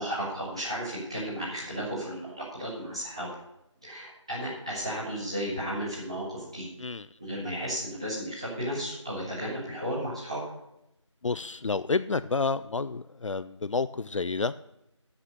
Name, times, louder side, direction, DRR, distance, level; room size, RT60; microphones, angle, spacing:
voice 1, 0.0-3.3 3.8-6.7 7.2-10.4, equal, 10° right, -11 dB, 2.0 m, -34 dB
voice 2, 11.2-14.5, left 4 dB, 75° left, 14 dB, 0.4 m, -29 dB
12.0 x 6.0 x 6.6 m, 0.87 s
figure-of-eight pair, 180°, 16 cm